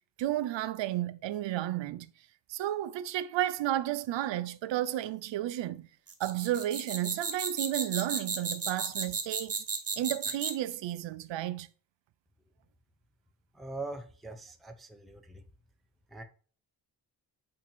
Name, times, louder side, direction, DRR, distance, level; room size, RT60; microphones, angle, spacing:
voice 1, 0.2-2.1 2.5-5.9 6.2-9.6 10.0-11.7, right 13 dB, 85° right, 0.6 m, -32 dB
sound 1, 6.1-10.7, right 5 dB, 35° right, 1.1 m, -34 dB
voice 2, 13.5-15.4 16.1-16.2, right 2 dB, ahead, 0.5 m, -42 dB
8.6 x 2.9 x 4.2 m
wide cardioid pair, 150°, 43 cm